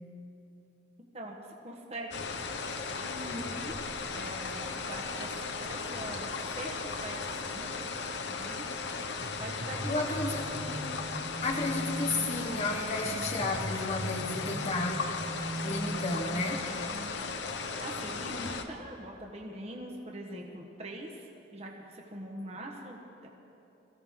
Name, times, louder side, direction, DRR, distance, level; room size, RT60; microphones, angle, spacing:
voice 1, 1.1-2.1 3.0-3.9 4.1-8.6 9.4-11.0 17.8-23.3, right 1 dB, 35° right, 0 dB, 1.3 m, -43 dB
sound 1, 2.1-18.6, left 4 dB, 65° left, 0.9 m, -36 dB
sound 2, 9.2-16.8, right 1 dB, 70° right, 2.9 m, -39 dB
voice 2, 9.9-10.6 11.4-15.1 15.6-16.7, left 2 dB, 35° left, 0 dB, 0.9 m, -32 dB
22.5 x 15.5 x 3.7 m, 2.8 s
head